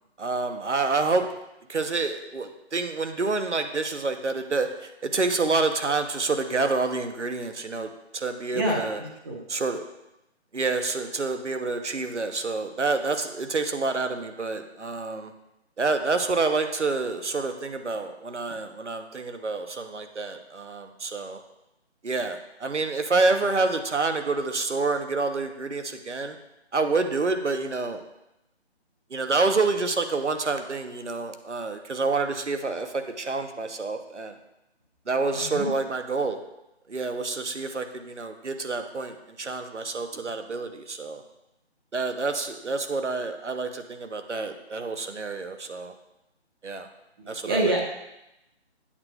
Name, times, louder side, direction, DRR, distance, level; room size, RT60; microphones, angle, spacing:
voice 1, 0.2-1.3 1.7-4.7 5.0-9.0 9.5-9.8 10.5-15.3 15.8-21.4 22.0-26.4 26.7-28.0 29.1-34.3 35.1-36.4 36.9-41.2 41.9-45.9 46.6-46.9 47.3-47.7, right 3 dB, 90° right, 7 dB, 0.9 m, -28 dB
voice 2, 8.5-8.9 9.2-9.4 35.3-35.7 47.2-47.8, right 1 dB, 20° right, -2 dB, 1.0 m, -26 dB
8.6 x 7.8 x 2.3 m, 0.90 s
figure-of-eight pair, 155°, 34 cm